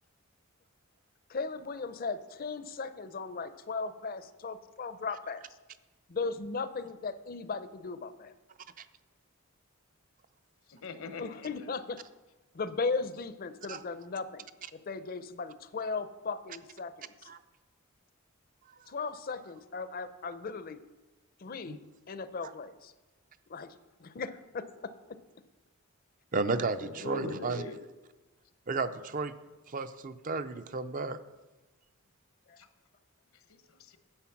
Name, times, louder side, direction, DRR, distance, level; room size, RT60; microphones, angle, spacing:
voice 1, 1.3-5.4 6.1-8.3 11.2-12.0 12.5-14.5 14.9-17.1 18.9-20.8 21.4-21.8 22.1-22.9 23.5-23.7 24.0-24.9 32.5-32.6, left 4 dB, 40° left, 13 dB, 0.6 m, -37 dB
voice 2, 10.7-11.7 26.5-27.8 32.6-32.7 33.5-34.0, left 3 dB, 70° left, 10 dB, 0.9 m, -42 dB
voice 3, 26.3-27.6 28.7-29.3 29.7-31.2, right 3 dB, 40° right, 11 dB, 0.5 m, -33 dB
9.9 x 7.8 x 5.8 m, 1.1 s
head